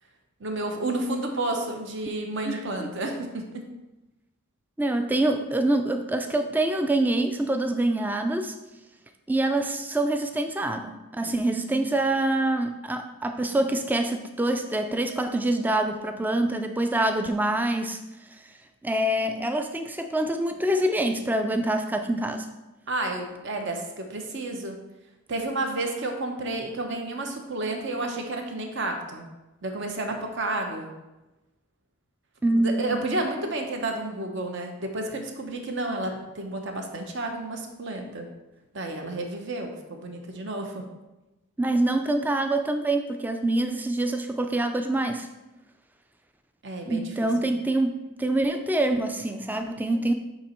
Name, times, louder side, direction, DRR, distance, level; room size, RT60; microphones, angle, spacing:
voice 1, 0.4-3.6 22.9-24.8 25.3-29.3 29.6-30.9 32.5-38.3 38.7-40.8 46.6-47.3, right 2 dB, 55° right, 3 dB, 0.9 m, -31 dB
voice 2, 2.5-2.9 4.8-8.5 9.3-18.0 18.8-22.5 32.4-33.0 41.6-45.3 46.9-50.1, right 1 dB, 10° right, 6 dB, 0.3 m, -25 dB
8.1 x 3.0 x 4.4 m, 1.0 s
head